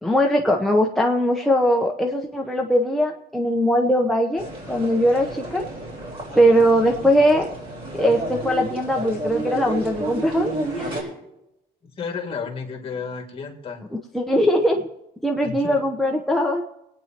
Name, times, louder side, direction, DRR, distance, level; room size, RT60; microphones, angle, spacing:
voice 1, 0.0-5.6 6.3-7.5 8.0-11.1 14.1-14.9 15.2-16.6, equal, ahead, 0 dB, 0.8 m, -20 dB
sound 1, 4.4-11.0, right 2 dB, 35° right, 4.2 m, -31 dB
voice 2, 12.0-13.8 15.4-15.8, left 5 dB, 30° left, 2 dB, 2.2 m, -32 dB
26.5 x 9.1 x 2.9 m, 0.89 s
cardioid pair, 110°, 17 cm